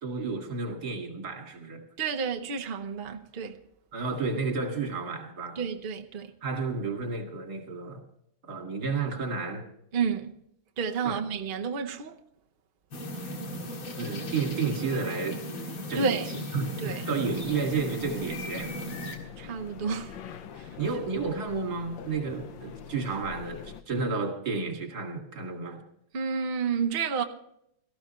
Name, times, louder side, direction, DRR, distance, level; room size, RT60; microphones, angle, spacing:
voice 1, 0.0-1.9 3.9-5.6 6.4-8.1 8.4-9.7 11.0-11.2 14.0-15.6 15.9-16.2 16.5-18.8 20.8-25.8, right 4 dB, 50° right, 2.5 m, -31 dB
voice 2, 2.0-3.6 5.6-6.3 9.9-10.3 10.8-12.2 16.0-16.3 16.8-17.0 19.4-20.2 20.6-20.7 26.1-27.2, right 6 dB, 65° right, 0.5 m, -30 dB
sound 1, 12.9-19.2, equal, 85° left, 2.8 m, -37 dB
sound 2, 17.2-23.8, left 8 dB, 70° left, 1.5 m, -44 dB
18.0 x 14.5 x 3.1 m
omnidirectional pair, 2.2 m